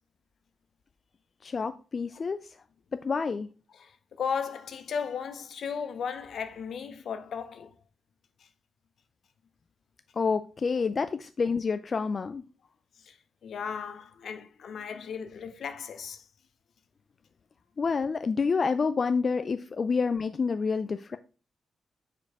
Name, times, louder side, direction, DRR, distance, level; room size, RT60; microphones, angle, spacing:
voice 1, 1.4-2.5 2.9-3.5 10.2-12.4 17.8-21.2, left 5 dB, 45° left, 0.3 m, -28 dB
voice 2, 3.7-7.7 13.0-13.2 13.4-16.2, left 6 dB, 70° left, 0.7 m, -35 dB
4.8 x 4.5 x 4.6 m
cardioid pair, 90°, 0 cm